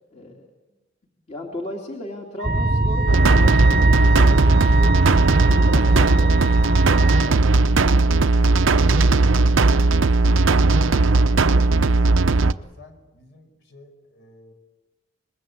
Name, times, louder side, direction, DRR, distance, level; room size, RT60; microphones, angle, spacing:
voice 1, 0.1-0.5 1.3-6.6 7.3-7.6, left 1 dB, 35° left, 0 dB, 2.9 m, -36 dB
sound 1, 2.4-8.2, right 1 dB, 25° right, 0.9 m, -23 dB
Wind instrument woodwind instrument, 2.4-7.3, right 4 dB, 55° right, 0.8 m, -28 dB
sound 2, 3.1-12.5, right 3 dB, 85° right, 0.8 m, -17 dB
voice 2, 12.8-14.5, left 2 dB, 70° left, 6 dB, 5.6 m, -51 dB
26.0 x 22.0 x 8.4 m, 1.1 s
head